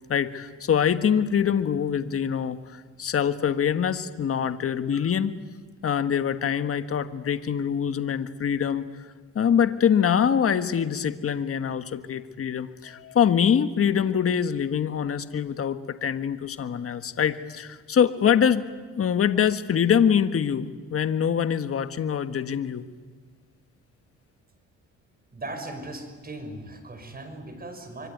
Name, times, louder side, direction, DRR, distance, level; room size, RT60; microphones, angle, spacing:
voice 1, 0.1-5.3 5.8-8.8 9.3-18.6 19.0-22.9, left 8 dB, 50° left, 10 dB, 1.5 m, -24 dB
voice 2, 25.3-28.1, right 2 dB, 30° right, 7 dB, 5.9 m, -38 dB
25.5 x 24.5 x 9.4 m, 1.5 s
cardioid pair, 90°, 30 cm